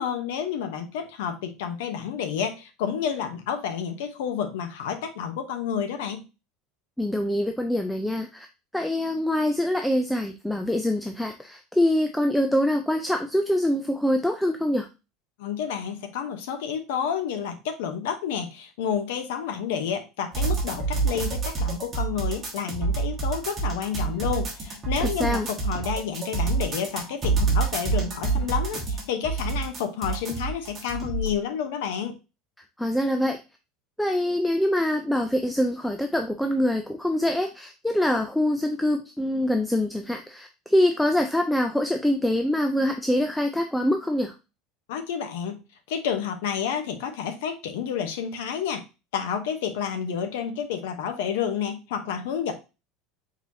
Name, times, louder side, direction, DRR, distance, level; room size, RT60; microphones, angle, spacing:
voice 1, 0.0-6.2 15.4-32.2 44.9-45.6 45.9-48.8 49.1-52.5, left 7 dB, 80° left, 7 dB, 0.9 m, -30 dB
voice 2, 7.0-8.5 8.7-14.9 25.0-25.5 32.8-33.4 34.0-44.3, left 1 dB, ahead, 5 dB, 0.3 m, -24 dB
sound 1, 20.3-31.3, right 4 dB, 15° right, 1.3 m, -27 dB
4.6 x 4.0 x 2.7 m, 0.29 s
cardioid pair, 175°, 0 cm